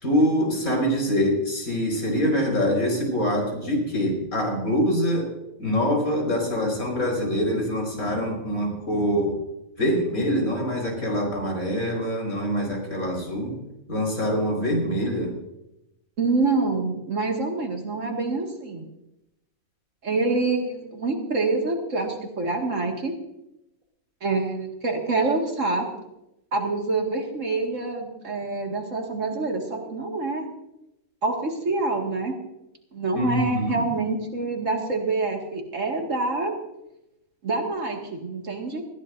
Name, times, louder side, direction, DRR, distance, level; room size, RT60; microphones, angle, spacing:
voice 1, 0.0-5.3 5.6-9.4 9.8-13.5 13.9-15.3 33.2-33.8, equal, 85° left, 0 dB, 5.4 m, -24 dB
voice 2, 16.2-18.9 20.0-23.1 24.2-25.9 26.5-30.5 31.2-32.3 32.9-36.5 37.4-38.8, right 3 dB, 65° right, 2 dB, 2.4 m, -26 dB
20.0 x 16.0 x 2.6 m, 0.88 s
omnidirectional pair, 1.4 m